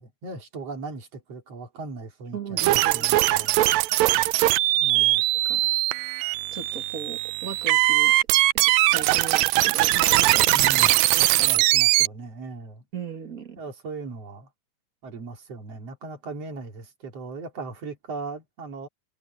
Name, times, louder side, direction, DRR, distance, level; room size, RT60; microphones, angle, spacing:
voice 1, 0.0-3.6 4.8-5.2 10.5-10.9 11.4-12.8 13.5-14.5 15.0-18.9, right 3 dB, 50° right, 4.1 m, -38 dB
voice 2, 2.3-3.2 4.9-5.0 5.5-5.6 6.5-8.2 8.5-10.7 11.1-11.7 12.9-13.6, right 6 dB, 35° right, 1.7 m, -38 dB
sound 1, 2.6-12.1, right 17 dB, 85° right, 1.6 m, -21 dB
omnidirectional pair, 3.7 m